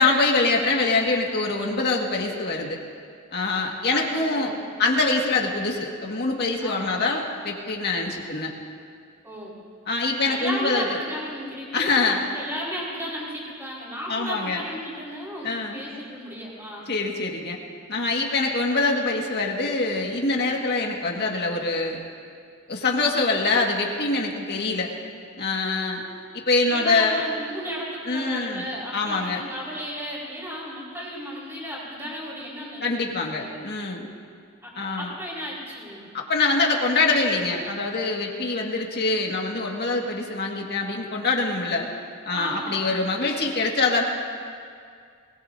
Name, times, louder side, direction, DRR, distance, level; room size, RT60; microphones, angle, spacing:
voice 1, 0.0-2.8 3.3-4.5 4.8-8.5 9.9-11.0 11.7-12.2 14.1-14.6 15.4-15.8 16.9-17.6 17.9-22.0 22.7-24.9 25.4-26.0 26.3-27.2 28.1-28.7 28.9-29.4 32.8-34.1 34.7-35.1 36.1-41.9 42.3-44.0, left 3 dB, 50° left, 0 dB, 1.8 m, -24 dB
voice 2, 3.9-4.6 6.6-6.9 9.2-9.5 10.2-16.9 26.7-33.0 33.4-33.5 34.6-34.7 35.0-36.1 42.3-42.9, equal, 10° right, -6 dB, 4.7 m, -34 dB
23.0 x 20.5 x 2.7 m, 2.2 s
head